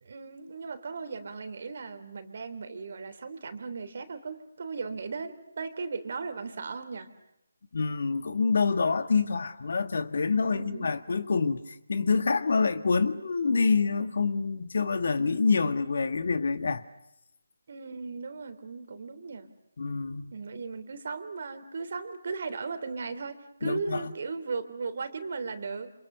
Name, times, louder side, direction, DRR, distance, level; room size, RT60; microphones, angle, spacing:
voice 1, 0.0-7.1 10.4-10.9 17.7-19.5 20.3-25.9, right 4 dB, 50° right, 3.3 m, -37 dB
voice 2, 7.7-11.6 11.9-16.8 19.8-20.3 23.6-24.1, left 4 dB, 55° left, 1.8 m, -26 dB
29.0 x 27.5 x 6.8 m
figure-of-eight pair, 150°, 0 cm